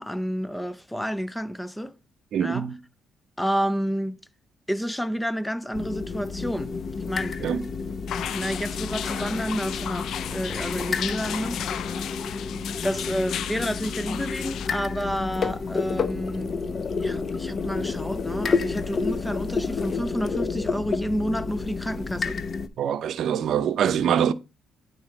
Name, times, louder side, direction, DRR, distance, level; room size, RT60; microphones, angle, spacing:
voice 1, 0.0-1.9 2.4-2.7 3.4-4.2 4.7-7.4 8.3-11.6 12.8-16.6 17.0-22.4, equal, 5° left, 0.6 m, -30 dB
voice 2, 2.3-2.8 7.4-7.6 22.8-24.3, right 8 dB, 70° right, 0.7 m, -24 dB
sound 1, 5.7-22.7, left 4 dB, 45° left, 0.8 m, -30 dB
sound 2, 8.1-14.7, left 10 dB, 70° left, 0.4 m, -34 dB
9.8 x 5.5 x 4.0 m
cardioid pair, 90°, 0 cm